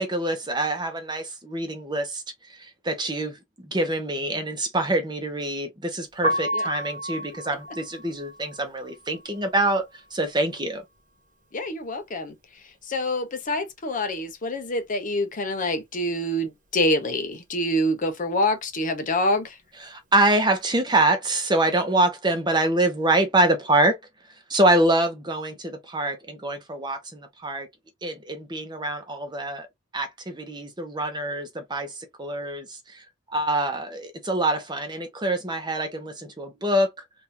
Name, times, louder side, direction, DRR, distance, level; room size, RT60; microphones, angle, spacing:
voice 1, 0.0-2.2 2.5-9.8 10.1-10.8 19.8-24.0 24.5-27.7 28.0-29.7 29.9-36.9, right 1 dB, 20° right, 0.9 m, -25 dB
Piano, 6.1-12.0 12.3-13.9 14.2-20.6, equal, 40° right, 1.2 m, -34 dB
voice 2, 11.5-12.3 12.8-19.6, left 1 dB, 40° left, 0.7 m, -26 dB
3.6 x 2.6 x 2.8 m
head